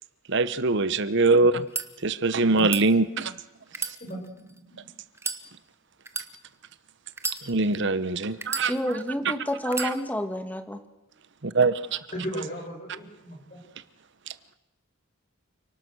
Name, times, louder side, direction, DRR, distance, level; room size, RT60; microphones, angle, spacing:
voice 1, 0.3-1.6 2.0-3.3 7.4-8.7 9.2-9.3 9.8-9.9 11.4-12.0, right 3 dB, 55° right, 14 dB, 1.0 m, -23 dB
sound 1, 1.5-1.9 2.6-2.8 3.7-4.6 5.1-5.4 6.0-6.3 7.1-7.8 8.4-9.1 9.7-9.9, right 4 dB, 10° right, 1.1 m, -33 dB
voice 2, 4.0-4.9 12.1-13.6, equal, 40° left, 0 dB, 7.7 m, -36 dB
voice 3, 8.7-10.8, equal, 10° left, 8 dB, 1.5 m, -29 dB
29.0 x 19.0 x 6.3 m, 0.99 s
head